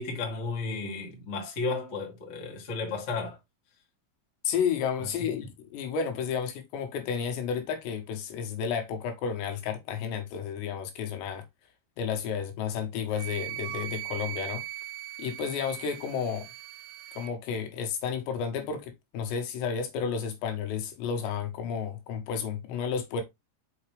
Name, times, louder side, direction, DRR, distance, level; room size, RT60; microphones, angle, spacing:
voice 1, 0.0-3.4, left 3 dB, 35° left, 1.1 m, -33 dB
voice 2, 4.4-11.4 12.0-14.6 15.2-16.5 17.2-23.2, left 7 dB, 75° left, 3.4 m, -32 dB
Wind instrument woodwind instrument, 13.1-17.3, right 16 dB, 90° right, 2.9 m, -39 dB
6.4 x 5.9 x 3.3 m
omnidirectional pair, 5.2 m